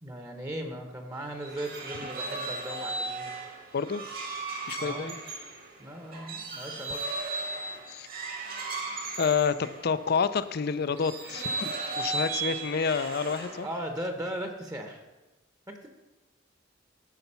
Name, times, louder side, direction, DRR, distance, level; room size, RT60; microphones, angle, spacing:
voice 1, 0.0-3.5 4.8-5.2 5.8-7.0 13.6-15.0 15.7-15.9, right 1 dB, 20° right, 5 dB, 1.0 m, -37 dB
sound 1, 1.2-10.3 10.9-13.9, right 3 dB, 50° right, 1.7 m, -36 dB
voice 2, 4.7-5.1 7.9-8.1 9.2-13.7, left 6 dB, 55° left, 14 dB, 0.5 m, -29 dB
13.0 x 5.8 x 5.6 m, 1.1 s
head